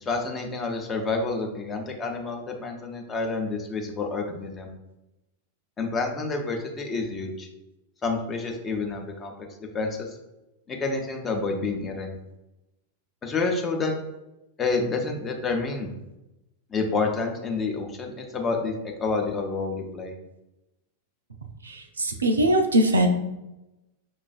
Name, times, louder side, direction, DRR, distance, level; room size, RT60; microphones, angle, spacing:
voice 1, 0.0-4.7 5.8-7.5 8.0-9.3 9.7-10.1 10.7-12.1 13.2-13.9 14.6-15.9 16.7-18.7 19.0-20.2, left 3 dB, 20° left, 2 dB, 0.6 m, -28 dB
voice 2, 22.0-23.1, right 1 dB, 75° right, 5 dB, 0.4 m, -20 dB
5.3 x 2.4 x 2.3 m, 0.96 s
figure-of-eight pair, 90°, 0 cm